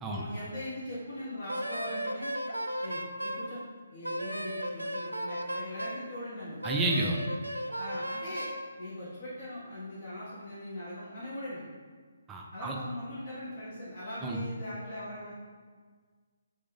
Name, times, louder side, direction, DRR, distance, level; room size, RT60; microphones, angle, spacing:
voice 1, 0.0-2.3 2.8-3.6 3.9-6.6 7.8-8.5 8.8-11.6 12.5-15.3, left 1 dB, 50° left, -10 dB, 1.0 m, -40 dB
Wind instrument woodwind instrument, 1.5-3.5 4.0-6.1 6.6-8.6, equal, 85° right, 0.3 m, -35 dB
voice 2, 6.6-7.2 12.3-12.7 14.2-14.4, right 2 dB, 10° right, 0 dB, 0.4 m, -30 dB
3.4 x 3.2 x 3.4 m, 1.5 s
figure-of-eight pair, 140°, 0 cm